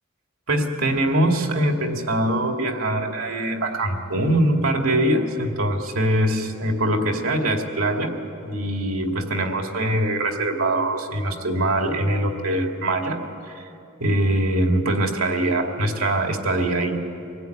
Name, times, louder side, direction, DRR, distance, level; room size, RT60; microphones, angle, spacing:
voice 1, 0.5-8.1 8.4-13.7 14.0-17.0, right 1 dB, 80° right, 3 dB, 2.3 m, -23 dB
24.5 x 17.5 x 9.2 m, 2.8 s
head